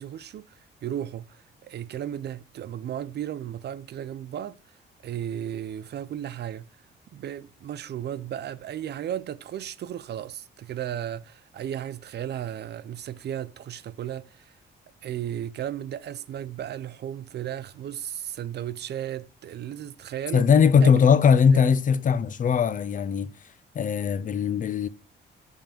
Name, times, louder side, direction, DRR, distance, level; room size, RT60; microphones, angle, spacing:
voice 1, 0.0-4.6 5.0-6.7 7.1-14.6 15.0-20.5 20.8-20.9 21.5-21.6, right 10 dB, 55° right, 0.5 m, -35 dB
voice 2, 20.3-23.3 23.8-24.9, left 6 dB, 40° left, 0.5 m, -20 dB
8.7 x 3.7 x 5.2 m
cardioid pair, 90°, 20 cm